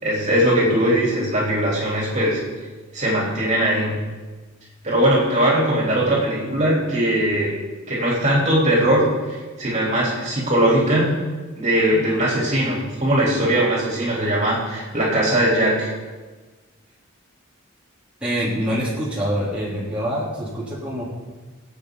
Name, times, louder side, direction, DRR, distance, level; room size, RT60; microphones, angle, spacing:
voice 1, 0.0-2.4 2.9-4.0 4.8-7.6 7.9-11.1 11.5-15.9, right 1 dB, 35° right, -5 dB, 3.7 m, -20 dB
voice 2, 18.2-21.0, equal, 5° right, -9 dB, 3.5 m, -25 dB
23.0 x 8.4 x 4.0 m, 1.3 s
head